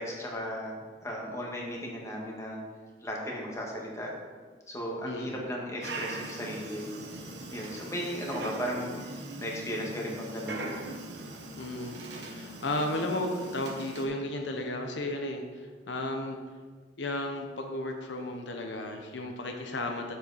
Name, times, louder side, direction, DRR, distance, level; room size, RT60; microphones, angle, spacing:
voice 1, 0.0-2.6 3.0-4.1 4.7-6.9 7.5-10.7, equal, 15° left, -2 dB, 1.6 m, -36 dB
voice 2, 5.1-5.4 11.6-16.4 17.0-20.2, left 1 dB, 80° left, 3 dB, 0.9 m, -34 dB
Dog, 5.8-14.1, right 2 dB, 70° right, 1.1 m, -41 dB
7.9 x 7.4 x 4.1 m, 1.5 s
head